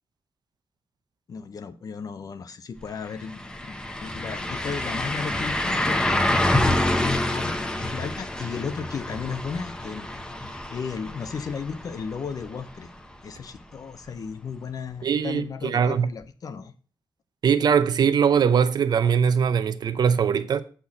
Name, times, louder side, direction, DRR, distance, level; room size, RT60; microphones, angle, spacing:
voice 1, 1.3-3.7 4.0-6.4 7.0-10.1 10.4-12.9 13.2-16.7, left 6 dB, 50° left, 0.6 m, -34 dB
sound 1, 2.8-2.9 3.2-13.0 13.4-13.5 16.2-16.3, left 1 dB, 10° left, 0.8 m, -27 dB
voice 2, 15.0-16.1 17.4-20.6, right 7 dB, 55° right, 0.6 m, -21 dB
8.0 x 4.3 x 7.1 m
wide cardioid pair, 150°, 8 cm